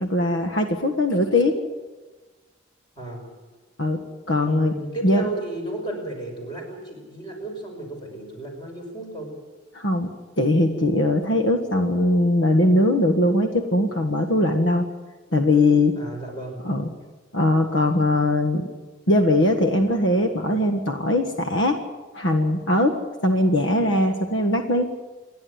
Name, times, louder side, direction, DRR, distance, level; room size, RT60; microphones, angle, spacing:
voice 1, 0.0-1.6 3.8-4.0 4.3-4.7 5.0-5.3 9.8-10.1 10.4-14.9 15.3-16.0 16.7-16.9 17.3-18.7 19.1-21.8 22.1-23.0 23.2-24.8, left 1 dB, 70° left, 5 dB, 1.7 m, -20 dB
voice 2, 4.4-9.3 16.0-16.7, right 2 dB, 25° left, 2 dB, 6.0 m, -33 dB
28.5 x 11.5 x 9.6 m, 1.2 s
head